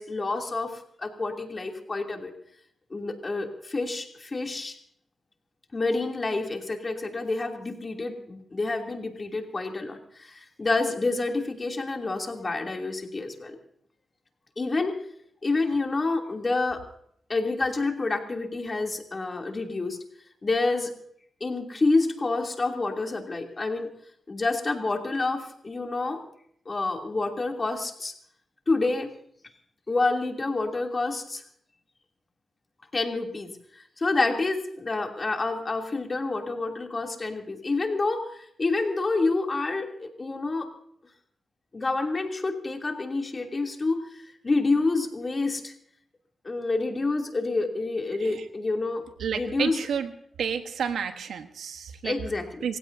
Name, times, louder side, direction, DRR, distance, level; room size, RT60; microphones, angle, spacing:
voice 1, 0.0-2.3 2.9-4.8 5.7-13.6 14.6-14.9 15.4-16.8 17.3-20.0 20.4-20.9 21.4-23.9 24.3-26.2 26.7-28.1 28.7-29.1 29.9-31.4 32.9-40.7 41.7-45.7 46.4-49.0 49.3-49.9 52.0-52.7, left 3 dB, 35° left, 2 dB, 2.9 m, -28 dB
voice 2, 49.2-50.1 50.4-52.1 52.6-52.8, right 7 dB, 90° right, 8 dB, 1.2 m, -30 dB
27.5 x 16.0 x 2.7 m, 0.68 s
cardioid pair, 70°, 0 cm